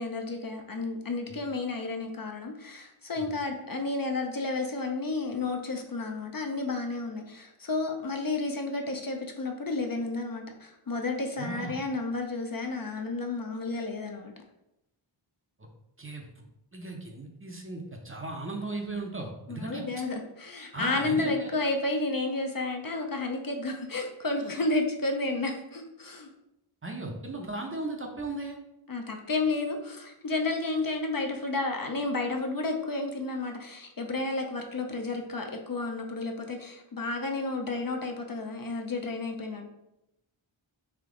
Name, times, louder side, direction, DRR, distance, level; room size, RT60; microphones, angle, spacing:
voice 1, 0.0-14.3 19.5-26.3 28.9-39.7, left 3 dB, 45° left, 3 dB, 0.5 m, -31 dB
voice 2, 11.4-11.7 16.0-16.2 16.7-19.8 20.7-21.5 26.8-28.6, right 2 dB, 25° right, 2 dB, 0.6 m, -36 dB
3.5 x 2.8 x 3.6 m, 0.88 s
wide cardioid pair, 60°, 50 cm